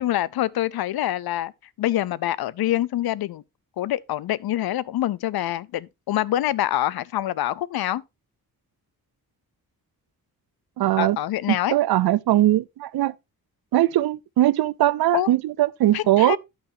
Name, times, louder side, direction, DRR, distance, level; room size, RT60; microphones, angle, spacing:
voice 1, 0.0-1.5 1.8-3.4 3.8-8.0 11.0-11.8 15.1-15.3 15.9-16.4, left 13 dB, 85° left, 0.6 m, -25 dB
voice 2, 10.8-11.2 11.7-13.1 13.7-16.4, right 14 dB, 90° right, 0.6 m, -20 dB
10.5 x 8.9 x 2.7 m
wide cardioid pair, 170°, 36 cm